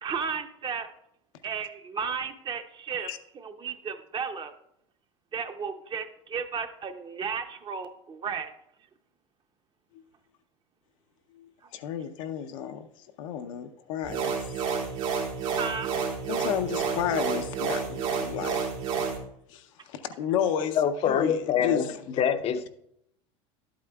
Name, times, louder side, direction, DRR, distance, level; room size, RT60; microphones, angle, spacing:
voice 1, 0.0-0.9 1.4-3.1 3.3-4.5 5.3-8.5 15.5-15.9, right 6 dB, 30° right, 0.6 m, -34 dB
voice 2, 11.3-14.3 16.3-18.6 19.5-20.8 21.0-22.0, left 9 dB, 75° left, 0.7 m, -32 dB
sound 1, 14.0-19.2, right 6 dB, 85° right, 2.3 m, -30 dB
voice 3, 20.8-21.9 22.2-22.7, left 8 dB, 35° left, 0.6 m, -25 dB
11.0 x 8.5 x 2.3 m
supercardioid pair, 100°, 17 cm